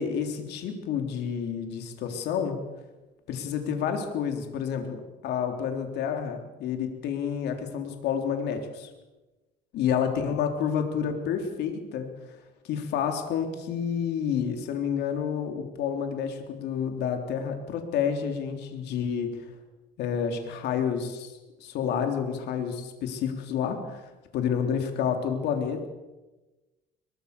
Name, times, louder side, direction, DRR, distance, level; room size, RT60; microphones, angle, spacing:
voice 1, 0.0-2.6 3.3-8.9 9.7-12.1 12.7-19.4 20.0-24.1 24.3-25.9, left 7 dB, 80° left, 5 dB, 3.7 m, -29 dB
23.0 x 23.0 x 6.9 m, 1.1 s
cardioid pair, 110°, 17 cm